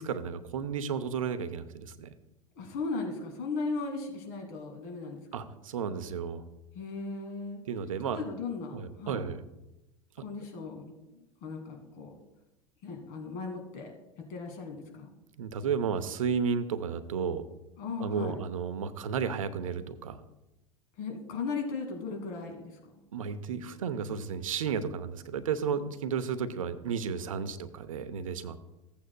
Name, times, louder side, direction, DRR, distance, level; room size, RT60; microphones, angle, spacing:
voice 1, 0.0-2.1 5.3-6.4 7.7-8.2 8.7-9.4 15.4-17.5 18.0-20.2 23.1-28.6, right 6 dB, 75° right, 12 dB, 0.7 m, -33 dB
voice 2, 2.6-5.4 6.7-7.6 8.2-9.2 10.2-12.1 12.8-13.9 14.3-15.1 17.8-18.4 21.0-22.9, left 4 dB, 50° left, 2 dB, 2.2 m, -37 dB
15.5 x 8.5 x 2.2 m, 0.96 s
figure-of-eight pair, 85°, 18 cm